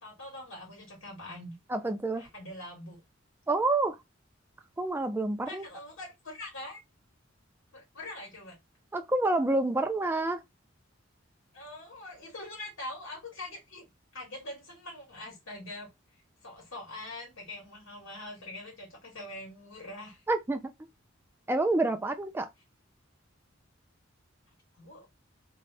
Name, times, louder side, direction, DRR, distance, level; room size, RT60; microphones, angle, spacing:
voice 1, 0.0-1.5 2.2-3.0 5.4-6.8 7.7-8.6 11.5-13.9 14.1-15.9 16.4-20.2 24.8-25.1, left 1 dB, 80° left, 1.4 m, -43 dB
voice 2, 1.7-2.2 3.5-4.0 4.8-5.6 8.9-10.4 20.3-20.6 21.5-22.5, right 2 dB, 10° right, 0.3 m, -28 dB
2.6 x 2.0 x 3.2 m
head